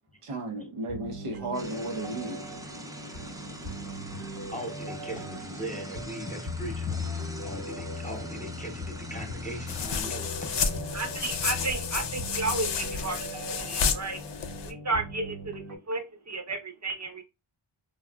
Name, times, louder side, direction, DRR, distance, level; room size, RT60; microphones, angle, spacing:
voice 1, 0.2-2.5, right 2 dB, 85° right, 0.8 m, -34 dB
sound 1, 0.9-15.8, left 1 dB, 70° right, 1.1 m, -39 dB
sound 2, 1.5-10.0, right 2 dB, 10° right, 0.3 m, -44 dB
voice 2, 3.7-4.2 4.5-10.7, equal, 15° left, 0.7 m, -40 dB
sound 3, 9.7-14.7, left 6 dB, 60° left, 0.5 m, -31 dB
voice 3, 10.9-14.2 14.6-17.2, right 3 dB, 35° right, 0.7 m, -33 dB
3.5 x 2.2 x 2.2 m
wide cardioid pair, 55°, 50 cm